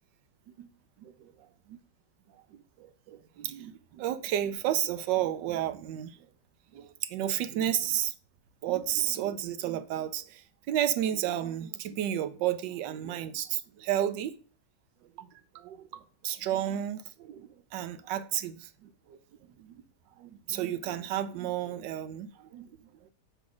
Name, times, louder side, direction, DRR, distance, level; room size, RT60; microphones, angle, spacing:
voice 1, 2.8-6.2 6.7-8.1 8.6-14.3 15.2-15.3 15.5-19.2 19.6-19.8 20.2-22.7, right 11 dB, 85° right, 1.3 m, -32 dB
7.7 x 3.2 x 6.2 m
omnidirectional pair, 1.9 m